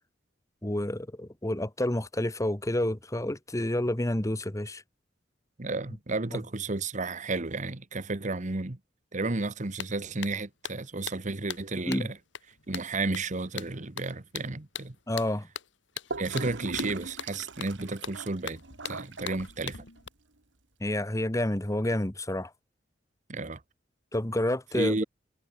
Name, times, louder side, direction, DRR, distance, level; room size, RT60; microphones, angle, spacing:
voice 1, 0.6-4.8 6.3-6.4 11.9-12.1 15.1-15.5 20.8-22.5 24.1-25.0, left 1 dB, 15° left, 1.3 m, -29 dB
voice 2, 5.6-8.8 9.1-12.2 12.7-14.9 16.2-19.8 23.3-23.6 24.7-25.0, right 3 dB, 40° right, 1.3 m, -32 dB
sound 1, 9.4-9.5 9.8-20.1, left 8 dB, 80° left, 2.2 m, -41 dB
Gurgling / Toilet flush, 16.1-20.1, right 3 dB, 80° right, 2.5 m, -39 dB
head